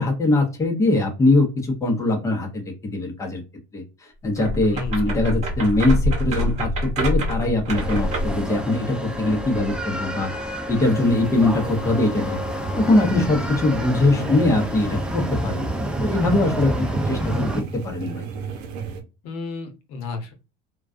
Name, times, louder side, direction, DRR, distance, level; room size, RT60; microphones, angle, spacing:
voice 1, 0.0-3.4 3.7-10.3 10.7-12.4 12.8-15.7 16.0-18.3, left 2 dB, 15° left, 2 dB, 0.8 m, -22 dB
sound 1, 4.3-8.4, equal, 40° right, 1.0 m, -25 dB
sound 2, 7.7-17.6, equal, 5° right, 0.3 m, -29 dB
sound 3, 10.8-19.0, right 6 dB, 70° right, 0.7 m, -34 dB
voice 2, 14.1-14.5 19.2-20.3, left 3 dB, 80° left, 6 dB, 0.8 m, -33 dB
2.3 x 2.2 x 2.4 m, 0.31 s
cardioid pair, 130°, 18 cm